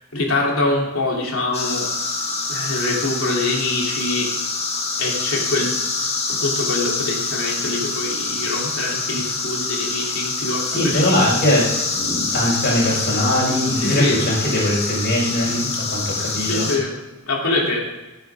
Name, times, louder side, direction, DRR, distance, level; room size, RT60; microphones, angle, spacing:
voice 1, 0.1-1.9 2.5-4.3 5.0-11.4 13.8-14.2 16.4-17.0 17.3-17.8, left 2 dB, 75° left, -2 dB, 3.5 m, -24 dB
sound 1, 1.5-16.8, left 4 dB, 30° left, 2.0 m, -26 dB
voice 2, 10.6-11.6 11.9-16.7, left 1 dB, 55° left, -9 dB, 4.9 m, -21 dB
18.0 x 9.2 x 3.7 m, 1.1 s
head